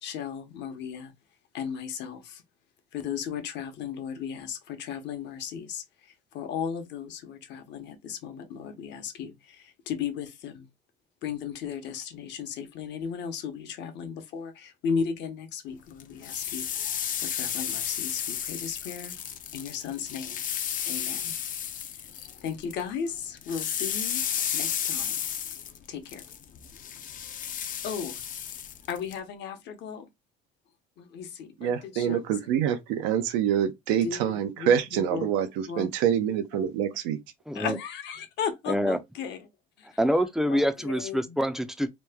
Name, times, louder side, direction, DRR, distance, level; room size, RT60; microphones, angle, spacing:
voice 1, 0.0-1.1 1.5-2.4 2.9-10.7 11.2-16.7 17.2-19.2 19.5-20.4 20.9-21.4 22.4-24.2 24.5-25.2 25.9-26.2 27.8-28.2 28.9-30.1 31.0-32.5 34.0-35.3 35.7-35.9 36.5-36.7 37.5-39.5 39.8-39.9 40.4-41.4, left 7 dB, 60° left, 0.9 m, -35 dB
sound 1, 16.0-22.8 23.1-29.2, left 9 dB, 45° left, 0.5 m, -33 dB
voice 2, 31.6-35.5 35.8-37.2, right 9 dB, 90° right, 0.7 m, -26 dB
voice 3, 37.5-37.8 38.7-39.0 40.0-41.9, equal, ahead, 0.4 m, -26 dB
3.0 x 2.1 x 3.5 m
cardioid pair, 105°, 20 cm